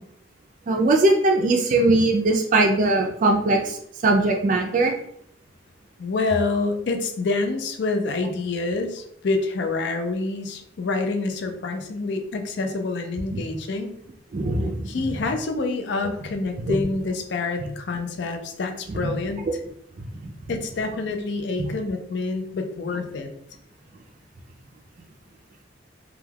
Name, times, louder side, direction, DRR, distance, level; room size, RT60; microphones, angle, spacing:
voice 1, 0.7-4.9 13.3-13.4 14.3-14.9 16.7-16.8 18.9-19.0 21.6-21.7, right 2 dB, 45° right, 2 dB, 0.3 m, -20 dB
voice 2, 6.0-13.9 14.9-19.5 20.5-23.3, left 3 dB, 65° left, 6 dB, 0.4 m, -27 dB
2.2 x 2.2 x 3.3 m, 0.69 s
head